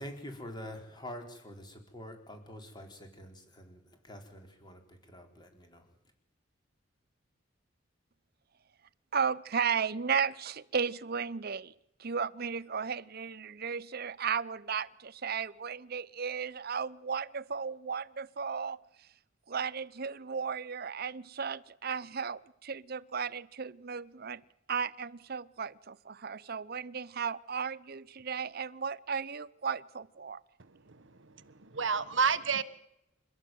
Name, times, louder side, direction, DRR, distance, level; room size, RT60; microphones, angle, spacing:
voice 1, 0.0-5.9, equal, 25° left, 4.7 m, -46 dB
voice 2, 9.1-11.7 12.0-19.1 19.5-24.4 24.7-30.4, right 6 dB, 50° right, 0.8 m, -35 dB
voice 3, 30.6-32.6, right 5 dB, 70° right, 1.4 m, -31 dB
28.5 x 13.0 x 9.4 m
head